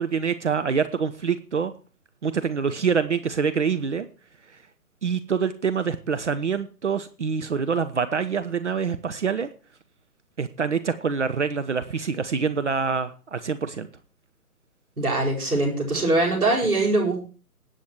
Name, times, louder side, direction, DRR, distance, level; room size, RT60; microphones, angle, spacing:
voice 1, 0.0-1.7 2.2-4.1 5.0-9.5 10.4-13.9, right 6 dB, 50° right, 10 dB, 0.9 m, -25 dB
voice 2, 15.0-17.2, right 2 dB, 75° right, -7 dB, 7.2 m, -22 dB
19.5 x 8.4 x 4.8 m, 0.37 s
figure-of-eight pair, 140°, 46 cm